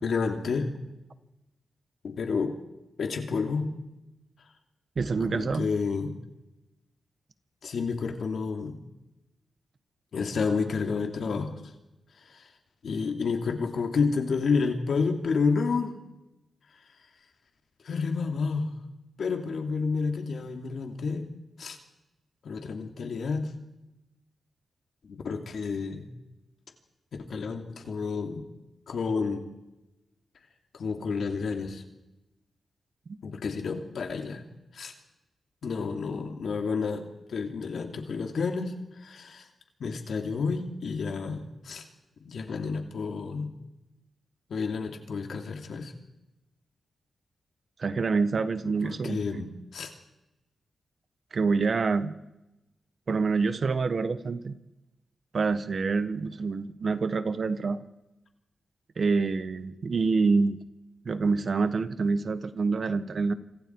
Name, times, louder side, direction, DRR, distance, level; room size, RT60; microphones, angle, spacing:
voice 1, 0.0-0.7 2.0-2.6 3.0-3.7 5.3-6.1 7.6-8.8 10.1-11.6 12.2-12.5 12.8-15.9 17.8-18.7 19.2-21.3 21.6-21.8 22.4-23.5 25.0-26.1 27.2-28.4 28.9-29.4 30.7-31.8 33.2-34.4 34.7-34.9 35.6-39.5 39.8-41.8 42.2-43.5 44.5-45.9 48.6-49.9, left 4 dB, 70° left, 4 dB, 2.9 m, -30 dB
voice 2, 5.0-5.7 47.8-49.4 51.3-52.1 53.1-54.5 55.3-57.8 59.0-60.6 61.0-63.3, right 4 dB, 55° right, 12 dB, 1.4 m, -26 dB
27.0 x 26.0 x 4.8 m, 0.96 s
cardioid pair, 80°, 0 cm